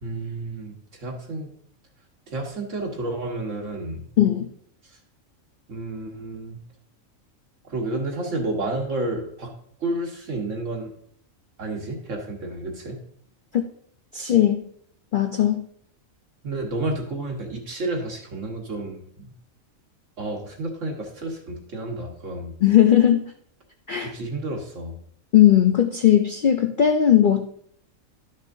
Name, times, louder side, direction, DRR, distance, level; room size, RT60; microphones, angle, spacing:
voice 1, 0.0-1.5 2.3-4.1 5.7-6.6 7.6-9.5 9.8-10.9 11.6-13.0 16.4-19.3 20.2-22.6 24.0-25.0, right 2 dB, 65° right, 1 dB, 1.8 m, -30 dB
voice 2, 4.2-4.5 13.5-13.6 14.1-14.6 15.1-15.6 22.6-23.2 23.9-24.1 25.3-27.5, left 11 dB, 60° left, 5 dB, 0.5 m, -18 dB
12.0 x 6.2 x 2.7 m, 0.66 s
omnidirectional pair, 1.4 m